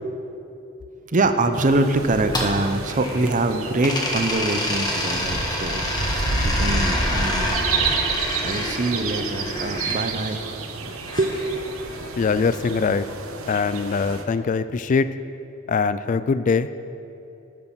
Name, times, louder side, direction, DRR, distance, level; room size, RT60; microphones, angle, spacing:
voice 1, 1.1-7.5 8.4-10.4 10.8-11.4, right 2 dB, 40° right, 8 dB, 0.8 m, -24 dB
sound 1, 1.5-14.2, right 3 dB, 90° right, 1.1 m, -30 dB
sound 2, 2.0-3.4 3.8-10.0 11.1-12.2, left 1 dB, 20° left, 1.6 m, -28 dB
voice 2, 12.2-13.0 13.5-15.1 15.7-16.7, left 5 dB, 40° left, 13 dB, 0.3 m, -22 dB
12.0 x 9.5 x 6.2 m, 2.8 s
head